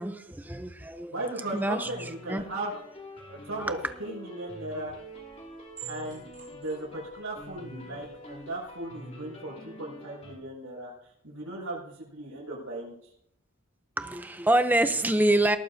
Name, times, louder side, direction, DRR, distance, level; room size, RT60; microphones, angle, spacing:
voice 1, 0.0-1.1 1.5-2.4 3.6-3.8 14.0-15.6, right 1 dB, 10° right, 9 dB, 0.6 m, -26 dB
voice 2, 1.1-2.7 3.3-4.9 5.9-13.1, right 2 dB, 75° right, -6 dB, 6.4 m, -37 dB
sound 1, 1.5-10.3, left 1 dB, 30° left, 2.5 m, -46 dB
sound 2, 4.5-8.8, right 9 dB, 35° right, 5.3 m, -51 dB
19.0 x 14.0 x 2.8 m, 0.72 s
head